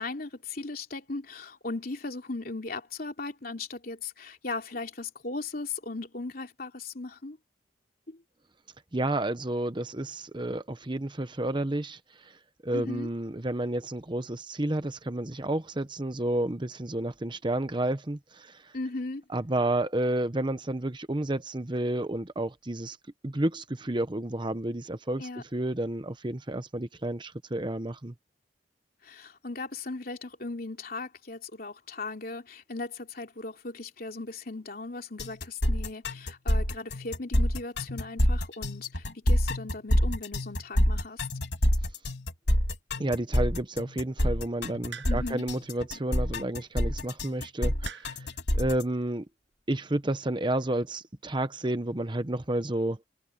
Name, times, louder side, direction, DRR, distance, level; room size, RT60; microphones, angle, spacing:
voice 1, 0.0-7.4 8.1-8.2 12.7-13.1 18.7-19.2 25.2-25.4 29.0-41.3 45.0-45.4, left 3 dB, 55° left, 3.1 m, -37 dB
voice 2, 8.9-12.4 12.6-18.7 19.3-23.0 23.2-28.1 43.0-48.3 48.5-49.3 49.7-53.0, right 1 dB, 25° right, 1.0 m, -31 dB
sound 1, 35.2-48.8, left 1 dB, 80° left, 3.3 m, -27 dB
sound 2, 44.9-45.4 46.6-46.9 47.8-48.3 49.3-49.6, right 4 dB, 90° right, 6.5 m, -42 dB
head